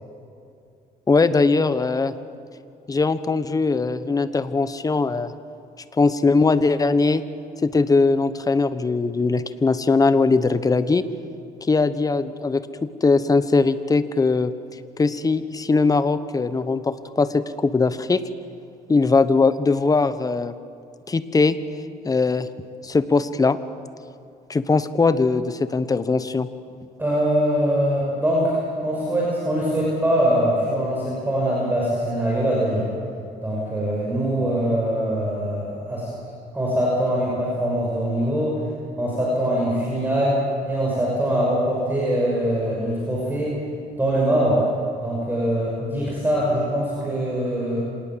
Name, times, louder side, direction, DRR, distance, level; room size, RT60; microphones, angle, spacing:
voice 1, 1.1-2.1 2.9-5.3 6.0-7.2 7.6-11.0 11.7-14.5 15.0-18.2 18.9-20.5 21.1-21.6 22.0-22.5 22.8-23.6 24.5-26.5, left 3 dB, 20° left, 13 dB, 1.1 m, -20 dB
voice 2, 27.0-32.9 33.4-36.1 36.5-38.6 39.0-40.4 40.6-43.6 44.0-44.6 45.0-47.8, right 1 dB, 10° right, -5 dB, 6.3 m, -23 dB
26.5 x 19.0 x 7.5 m, 2.5 s
cardioid pair, 110°, 17 cm